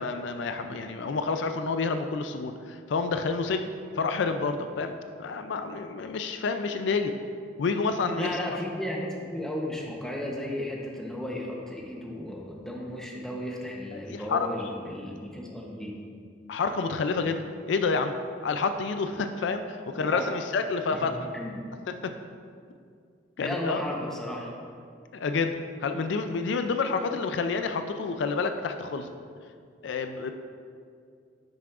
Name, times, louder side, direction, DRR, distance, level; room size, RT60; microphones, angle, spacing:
voice 1, 0.0-3.7 4.0-7.1 7.6-8.5 14.1-14.7 16.5-18.2 18.4-21.2 22.0-22.1 23.4-23.8 25.1-25.6 25.8-29.1 29.8-30.3, left 4 dB, 70° left, 8 dB, 0.4 m, -29 dB
voice 2, 8.2-16.0 19.9-20.3 20.9-21.6 23.4-24.5, left 1 dB, 5° left, -2 dB, 0.8 m, -34 dB
10.5 x 5.9 x 2.5 m, 2.2 s
head